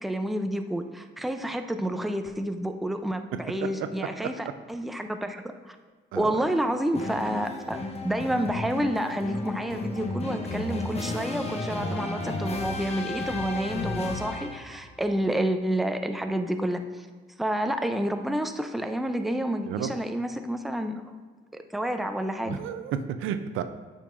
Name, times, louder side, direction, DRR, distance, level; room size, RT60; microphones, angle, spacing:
voice 1, 0.0-5.8 6.1-17.1 17.4-21.0 21.5-22.6, right 1 dB, ahead, 6 dB, 0.5 m, -29 dB
voice 2, 6.1-6.5 19.7-19.9 22.5-23.6, right 9 dB, 85° right, 10 dB, 0.4 m, -32 dB
News End Signature, 6.9-14.8, left 2 dB, 30° left, 0.9 m, -33 dB
8.4 x 5.4 x 2.5 m, 1.5 s
cardioid pair, 90°, 20 cm